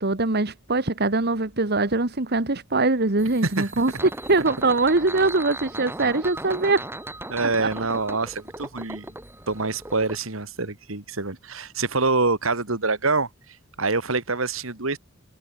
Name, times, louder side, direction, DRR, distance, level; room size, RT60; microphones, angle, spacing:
voice 1, 0.0-6.8 7.6-7.7, right 3 dB, 50° right, 1.7 m, -22 dB
sound 1, 3.2-10.2, right 1 dB, 10° right, 5.4 m, -38 dB
voice 2, 7.3-9.1 9.5-13.3 13.8-15.0, right 3 dB, 85° right, 2.6 m, -25 dB
head